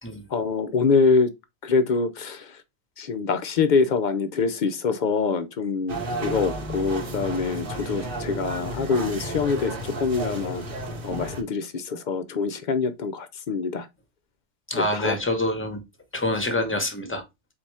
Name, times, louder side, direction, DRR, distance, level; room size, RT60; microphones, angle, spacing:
voice 1, 0.3-1.3 1.6-2.6 3.0-10.6 11.0-13.9 14.7-15.2, left 4 dB, 50° left, 0.6 m, -25 dB
sound 1, 5.9-11.4, right 1 dB, 45° right, 1.1 m, -32 dB
voice 2, 14.7-15.8 16.1-17.2, left 1 dB, 10° left, 0.8 m, -26 dB
4.1 x 2.6 x 4.7 m
omnidirectional pair, 1.3 m